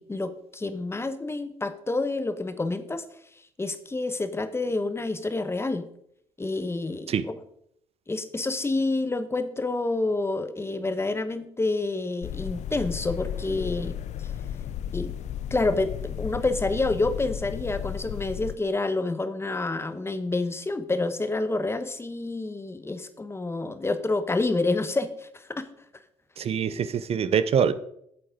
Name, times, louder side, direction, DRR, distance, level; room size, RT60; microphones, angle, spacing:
voice 1, 0.0-3.0 3.6-5.9 6.4-7.4 8.1-14.0 14.9-15.2 15.5-25.7, left 2 dB, 20° left, 11 dB, 1.1 m, -28 dB
sound 1, 12.2-18.6, left 10 dB, 60° left, 0.6 m, -34 dB
voice 2, 26.4-27.7, right 7 dB, 50° right, 13 dB, 0.7 m, -24 dB
8.3 x 7.7 x 5.1 m, 0.70 s
supercardioid pair, 65°, 13 cm